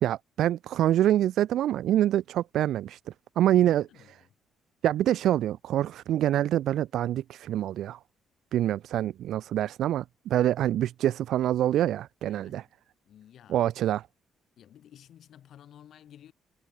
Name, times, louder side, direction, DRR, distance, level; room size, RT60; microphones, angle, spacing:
voice 1, 0.0-3.0 3.4-3.8 4.8-8.0 8.5-12.6 13.5-14.0, right 12 dB, 80° right, 0.6 m, -25 dB
voice 2, 3.6-4.3 12.2-12.6 13.0-13.7 14.6-16.3, left 10 dB, 70° left, 3.2 m, -53 dB
cardioid pair, 90°, 0 cm